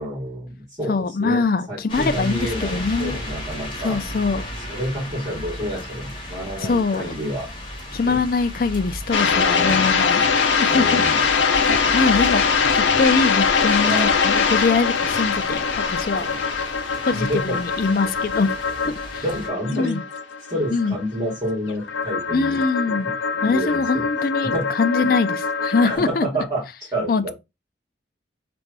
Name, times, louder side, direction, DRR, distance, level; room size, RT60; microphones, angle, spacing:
voice 1, 0.0-0.9 1.2-4.0 4.7-7.5 8.0-8.2 9.2-9.8 10.7-11.2 13.8-14.2 16.1-16.4 17.0-17.6 18.8-18.9 19.2-20.0 20.5-22.6 22.9-23.0 23.4-24.6 25.0-25.1 25.8-26.6 26.9-27.3, equal, 20° right, 2.7 m, -29 dB
voice 2, 0.9-3.2 3.8-4.5 6.6-7.1 7.9-10.2 10.6-11.0 11.9-12.5 12.7-16.3 17.0-18.5 19.1-19.2 19.8-20.0 20.7-21.0 22.3-23.1 23.4-26.3 27.1-27.3, left 4 dB, 50° left, 0.4 m, -23 dB
sound 1, 1.9-19.5, left 1 dB, 25° left, 1.4 m, -35 dB
sound 2, 9.1-26.0, left 5 dB, 85° left, 0.7 m, -22 dB
4.4 x 2.6 x 4.6 m
head